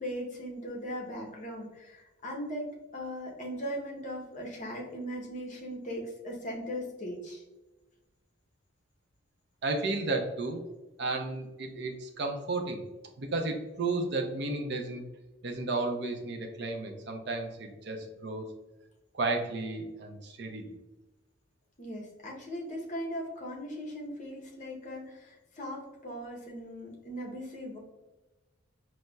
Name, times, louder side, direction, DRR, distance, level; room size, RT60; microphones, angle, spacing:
voice 1, 0.0-7.4 21.8-27.8, equal, 40° left, -1 dB, 0.7 m, -39 dB
voice 2, 9.6-10.6 11.0-12.8 13.2-15.0 15.4-18.5 19.1-20.7, right 3 dB, 60° right, 3 dB, 0.5 m, -33 dB
5.2 x 2.0 x 2.2 m, 1.1 s
head